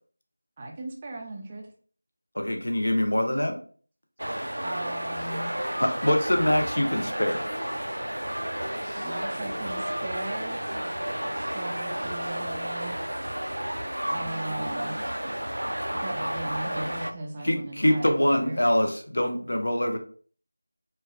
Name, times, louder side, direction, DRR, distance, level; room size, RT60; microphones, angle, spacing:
voice 1, 0.6-1.7 4.6-5.5 9.0-10.9 11.2-13.1 14.0-14.9 15.9-18.6, right 2 dB, 20° right, 0 dB, 0.3 m, -38 dB
voice 2, 2.3-3.6 5.8-7.5 17.4-20.0, left 1 dB, 70° left, 4 dB, 0.7 m, -24 dB
sound 1, 4.2-17.1, equal, 85° right, 0.4 m, -32 dB
voice 3, 8.3-9.8 10.5-10.6 14.0-15.5, equal, 25° left, -2 dB, 0.9 m, -47 dB
4.3 x 2.3 x 2.3 m, 0.44 s
figure-of-eight pair, 170°, 0 cm